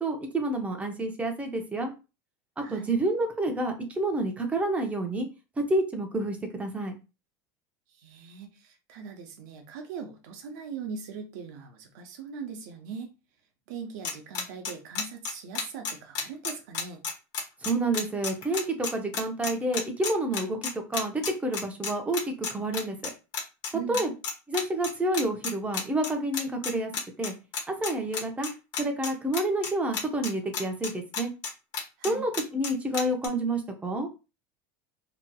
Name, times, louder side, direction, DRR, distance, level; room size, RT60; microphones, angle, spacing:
voice 1, 0.0-1.9 2.6-5.3 5.7-6.9 17.6-23.1 23.9-24.1 24.5-26.9 27.2-27.3 27.7-28.5 28.8-31.3 32.0-34.1, right 1 dB, 15° right, 4 dB, 0.6 m, -29 dB
voice 2, 8.0-13.1 13.7-17.0 23.7-24.0 32.0-32.2, right 6 dB, 80° right, 5 dB, 0.8 m, -40 dB
sound 1, 14.0-33.3, left 5 dB, 50° left, 1.0 m, -31 dB
2.8 x 2.7 x 2.2 m, 0.29 s
supercardioid pair, 125°, 10 cm